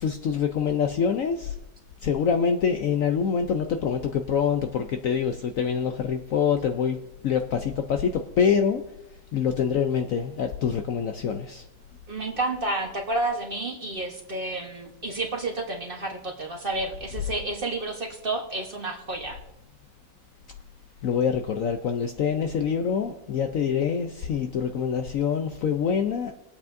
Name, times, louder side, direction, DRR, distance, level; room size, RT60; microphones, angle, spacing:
voice 1, 0.0-1.5 2.0-7.0 7.2-8.8 9.3-11.6 21.0-26.3, left 7 dB, 65° left, 6 dB, 0.9 m, -25 dB
voice 2, 12.1-19.4, right 2 dB, 35° right, 2 dB, 1.1 m, -30 dB
21.0 x 8.4 x 2.6 m, 0.92 s
omnidirectional pair, 1.9 m